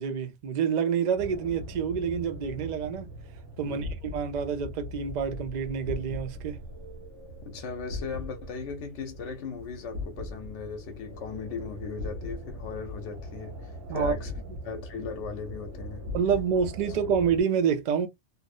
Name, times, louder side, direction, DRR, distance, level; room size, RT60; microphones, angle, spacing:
voice 1, 0.0-3.1 3.6-6.6 13.9-14.2 16.1-18.1, right 7 dB, 50° right, 0.5 m, -27 dB
sound 1, 1.2-17.4, left 1 dB, 90° right, 1.1 m, -40 dB
voice 2, 7.5-14.3 14.6-16.1, left 5 dB, 90° left, 0.9 m, -38 dB
2.6 x 2.0 x 2.4 m
omnidirectional pair, 1.2 m